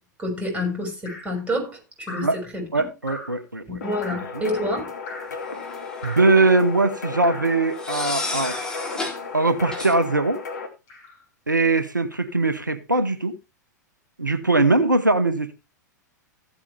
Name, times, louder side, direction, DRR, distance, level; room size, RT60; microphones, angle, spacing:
voice 1, 0.2-2.6 3.7-4.9, left 1 dB, 10° right, 6.5 m, -28 dB
Drip, 1.1-1.4 2.1-2.4 3.1-3.4 4.0-4.3 5.1-5.4 6.0-6.4 7.2-7.6 8.4-8.8 9.6-10.0 10.9-11.2 12.1-12.3, left 2 dB, 35° left, 7.4 m, -39 dB
voice 2, 2.7-3.8 6.0-8.6 9.3-10.4 11.5-13.4 14.2-15.5, right 2 dB, 85° right, 0.9 m, -21 dB
sound 1, 3.8-10.7, left 4 dB, 65° left, 2.7 m, -35 dB
sound 2, 5.5-6.2 7.8-9.2 9.7-9.9, left 2 dB, 5° left, 3.1 m, -31 dB
15.5 x 8.4 x 3.4 m
figure-of-eight pair, 95°, 10 cm